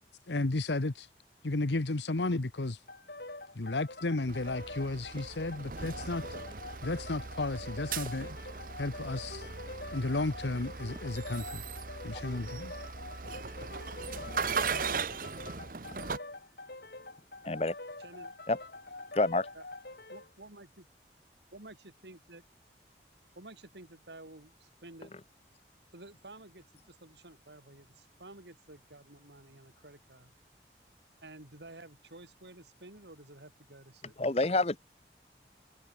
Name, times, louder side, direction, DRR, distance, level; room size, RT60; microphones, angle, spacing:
voice 1, 0.3-1.1 1.4-2.8 3.5-6.2 6.8-8.4 8.8-9.5 9.9-11.6 12.0-12.7, left 2 dB, 85° left, 1.1 m, -33 dB
sound 1, 2.9-20.3, left 2 dB, 65° left, 4.5 m, -45 dB
sound 2, 4.3-16.2, right 5 dB, 50° right, 0.9 m, -39 dB
sound 3, 6.5-12.4, right 1 dB, 30° right, 5.4 m, -58 dB
voice 2, 18.0-18.4 19.5-19.7 20.1-20.9 21.5-22.4 23.4-25.1 25.9-30.3 31.2-34.5, right 2 dB, 80° right, 3.6 m, -52 dB
voice 3, 19.1-19.5 34.2-34.8, left 2 dB, 35° left, 0.9 m, -27 dB
head